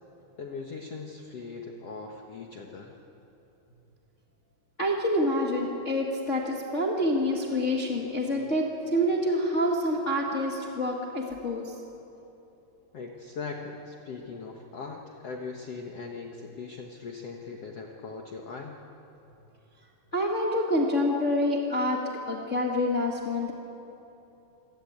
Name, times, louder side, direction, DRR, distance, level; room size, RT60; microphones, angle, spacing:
voice 1, 0.4-2.9 12.9-18.8, left 4 dB, 70° left, 1 dB, 1.5 m, -40 dB
voice 2, 4.8-11.7 20.1-22.0 22.3-23.5, left 1 dB, 45° left, -1 dB, 0.9 m, -27 dB
26.5 x 17.5 x 8.8 m, 3.0 s
omnidirectional pair, 4.9 m